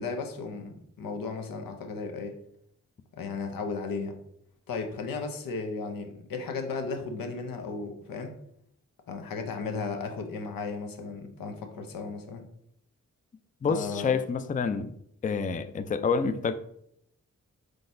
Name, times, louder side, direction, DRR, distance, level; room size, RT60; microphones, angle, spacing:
voice 1, 0.0-2.4 3.2-4.2 4.7-8.3 9.1-12.5 13.7-14.1, left 4 dB, 85° left, 0.8 m, -35 dB
voice 2, 13.6-14.9 15.2-16.6, left 5 dB, 25° left, 0.4 m, -28 dB
4.7 x 3.9 x 2.6 m
cardioid pair, 45°, 33 cm